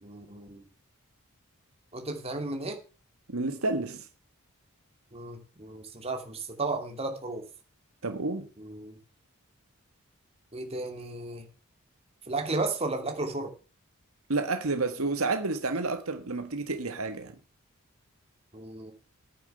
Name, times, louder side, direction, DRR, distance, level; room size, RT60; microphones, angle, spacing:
voice 1, 0.0-0.6 1.9-2.8 5.1-7.4 8.6-9.0 10.5-11.4 12.3-13.5 18.5-18.9, right 2 dB, 30° right, 2.6 m, -34 dB
voice 2, 3.3-4.1 8.0-8.5 14.3-17.3, right 3 dB, 70° right, 1.5 m, -30 dB
11.0 x 9.3 x 6.8 m
head